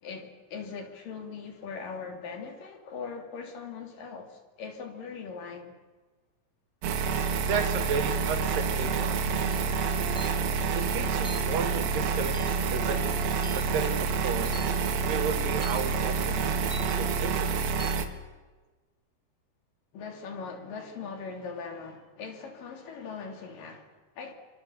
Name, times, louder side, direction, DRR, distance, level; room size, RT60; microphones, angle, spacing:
voice 1, 0.0-5.7 19.9-24.3, left 5 dB, 70° left, 4.5 m, -40 dB
sound 1, 6.8-18.1, right 5 dB, 90° right, 3.5 m, -28 dB
voice 2, 7.5-9.2 10.8-13.1 13.5-14.6 15.0-16.6 17.0-17.6, right 5 dB, 75° right, 3.9 m, -33 dB
sound 2, 8.5-17.2, right 4 dB, 30° right, 1.2 m, -42 dB
sound 3, 10.2-10.4 11.2-11.5 12.3-12.6 13.4-13.7 14.5-14.7 15.6-15.8 16.7-16.9 17.8-18.0, left 1 dB, ahead, 2.1 m, -43 dB
27.5 x 25.5 x 7.1 m
omnidirectional pair, 4.0 m